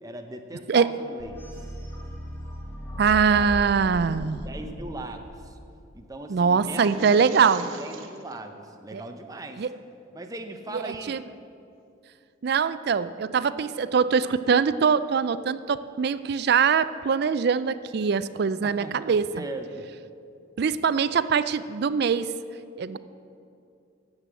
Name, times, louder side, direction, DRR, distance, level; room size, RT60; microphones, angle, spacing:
voice 1, 0.0-1.3 3.3-3.5 4.4-5.6 5.9-9.7 10.1-11.2 18.6-19.9, right 2 dB, 20° right, 5 dB, 0.7 m, -39 dB
sound 1, 1.2-6.1, equal, 15° left, 1.6 m, -37 dB
voice 2, 3.0-4.4 6.3-7.7 8.9-9.0 9.6-9.7 10.7-11.2 12.4-19.3 20.6-22.3 22.8-23.0, right 6 dB, 55° right, 14 dB, 0.4 m, -23 dB
sound 2, 6.6-8.4, right 6 dB, 80° right, 0.9 m, -43 dB
9.7 x 7.6 x 8.1 m, 2.5 s
head